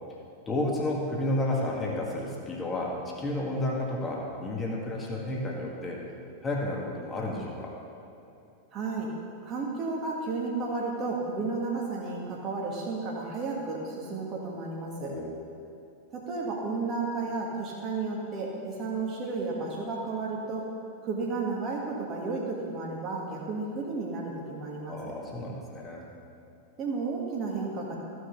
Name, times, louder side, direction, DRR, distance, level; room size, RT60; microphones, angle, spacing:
voice 1, 0.5-6.0 6.4-7.7 15.0-15.3 24.9-26.1, left 1 dB, 15° left, -2 dB, 1.9 m, -31 dB
voice 2, 8.7-9.1 9.4-15.1 16.1-20.6 21.0-25.0 26.8-28.0, right 3 dB, 30° right, -3 dB, 1.9 m, -32 dB
14.5 x 6.4 x 3.9 m, 2.9 s
figure-of-eight pair, 90°, 0 cm